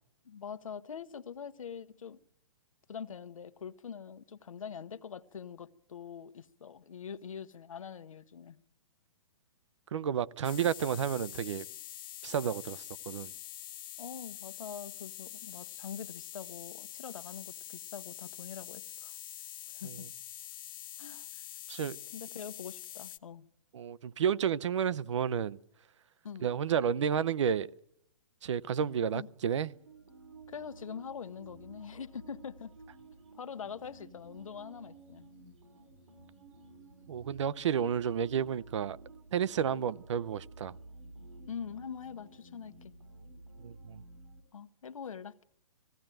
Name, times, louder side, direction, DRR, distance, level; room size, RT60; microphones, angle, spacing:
voice 1, 0.2-2.2 2.9-8.6 14.0-19.1 19.7-20.1 21.0-21.4 22.1-23.5 26.2-26.5 29.1-29.3 30.5-32.7 33.4-35.3 39.7-39.8 41.5-42.9 44.5-45.4, left 7 dB, 85° left, 1.0 m, -44 dB
voice 2, 9.9-11.7 12.2-13.3 19.8-19.9 21.7-22.0 23.7-25.6 26.4-27.7 28.4-29.7 37.1-39.0 39.3-40.7 43.6-44.0, right 8 dB, 65° right, 0.7 m, -31 dB
sound 1, 10.4-23.2, left 13 dB, 40° left, 0.7 m, -45 dB
sound 2, 29.6-44.4, right 3 dB, 90° right, 4.6 m, -53 dB
19.5 x 16.0 x 9.0 m
hypercardioid pair, 150°, 17 cm